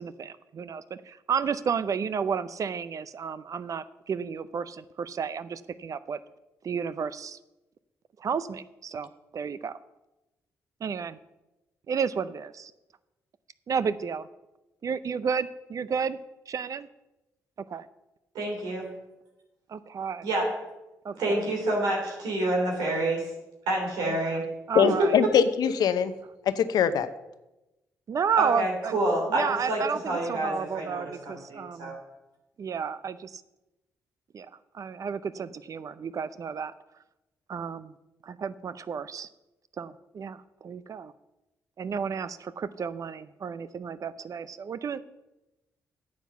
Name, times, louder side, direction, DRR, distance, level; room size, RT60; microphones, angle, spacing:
voice 1, 0.0-6.2 6.6-7.4 8.2-9.8 10.8-11.2 11.9-12.7 13.7-14.3 14.8-16.2 16.5-16.9 17.7-17.9 19.7-20.3 21.0-21.4 24.1-25.2 28.1-31.9 32.6-33.4 34.3-34.5 34.7-36.7 37.5-37.9 38.2-39.3 39.8-41.1 41.8-45.0, right 6 dB, 55° right, 15 dB, 0.5 m, -32 dB
voice 2, 18.3-18.8 20.2-20.4 21.1-23.2 23.7-24.4 24.8-24.9 28.4-31.9, right 2 dB, 85° right, -1 dB, 3.1 m, -28 dB
voice 3, 24.8-26.1 26.5-27.1, left 8 dB, 75° left, 13 dB, 0.7 m, -22 dB
9.2 x 7.4 x 6.9 m, 1.0 s
supercardioid pair, 60°, 7 cm